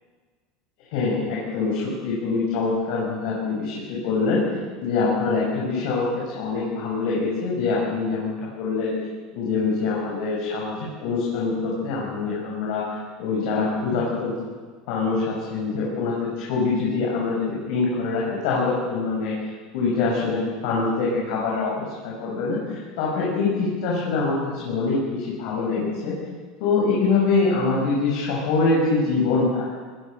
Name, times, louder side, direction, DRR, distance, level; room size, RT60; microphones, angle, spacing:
voice 1, 0.9-4.4 4.8-8.9 9.3-12.8 13.2-14.3 14.9-19.3 19.7-24.4 24.6-26.1 26.6-29.6, left 4 dB, 65° left, -5 dB, 7.3 m, -24 dB
21.5 x 20.5 x 6.9 m, 1.5 s
supercardioid pair, 145°, 0 cm